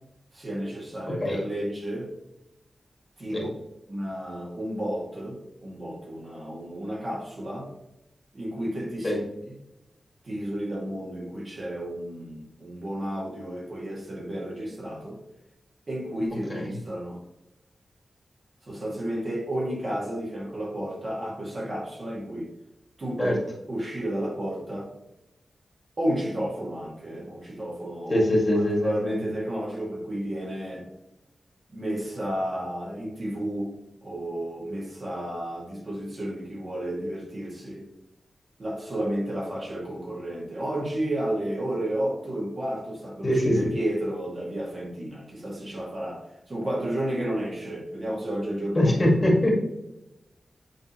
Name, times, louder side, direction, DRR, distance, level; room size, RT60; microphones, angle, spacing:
voice 1, 0.3-2.1 3.2-3.5 3.9-7.7 8.3-9.2 10.2-15.2 15.9-17.2 18.6-22.5 23.0-24.9 26.0-28.3 28.5-30.9 31.7-33.7 34.0-37.9 38.6-48.9, right 1 dB, 45° right, -3 dB, 2.1 m, -32 dB
voice 2, 28.1-29.2 43.2-43.6 48.8-49.6, left 1 dB, 25° left, -2 dB, 1.9 m, -22 dB
8.8 x 3.9 x 3.0 m, 0.89 s
wide cardioid pair, 105°, 0 cm